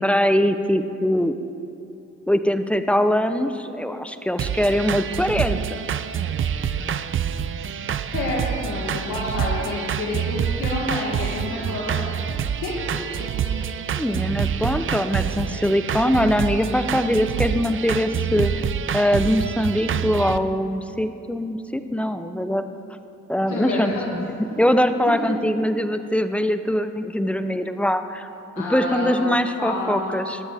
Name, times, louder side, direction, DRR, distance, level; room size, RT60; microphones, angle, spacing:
voice 1, 0.0-1.4 2.3-5.8 14.0-18.6 18.9-22.6 23.3-24.3 24.6-28.3 28.6-30.4, equal, 5° left, 9 dB, 0.6 m, -22 dB
sound 1, 4.4-20.4, right 8 dB, 45° right, 0.5 m, -27 dB
voice 2, 8.1-13.8 23.4-24.0 28.6-29.1 29.6-30.2, left 2 dB, 75° left, -5 dB, 2.1 m, -29 dB
18.5 x 12.5 x 3.5 m, 2.7 s
cardioid pair, 90°, 30 cm